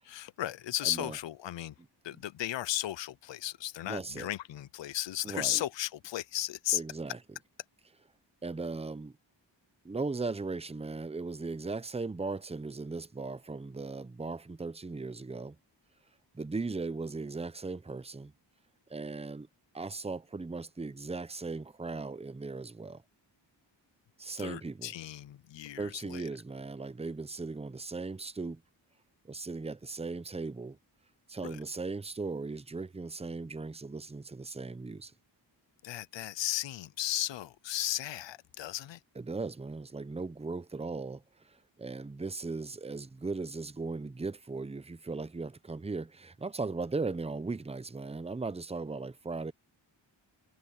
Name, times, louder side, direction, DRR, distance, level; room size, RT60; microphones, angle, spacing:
voice 1, 0.0-1.7 2.0-6.8 24.4-26.2 31.4-31.6 35.8-39.0, left 14 dB, 75° left, 0.6 m, -35 dB
voice 2, 0.8-1.2 3.8-4.3 5.2-5.6 6.7-7.2 8.4-9.1 9.8-15.6 16.3-18.3 18.9-19.5 19.7-23.0 24.2-24.9 25.8-28.6 29.2-30.8 31.3-35.1 39.2-49.5, right 3 dB, 15° right, 0.6 m, -38 dB
wide cardioid pair, 125°, 45 cm